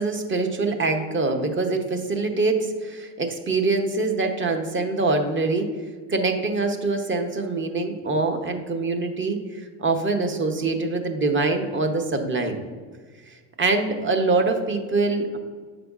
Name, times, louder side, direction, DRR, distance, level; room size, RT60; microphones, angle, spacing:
voice 1, 0.0-5.7 6.1-12.6 13.6-15.4, right 3 dB, 25° right, 5 dB, 0.8 m, -24 dB
7.9 x 5.0 x 2.4 m, 1.5 s
supercardioid pair, 100°, 48 cm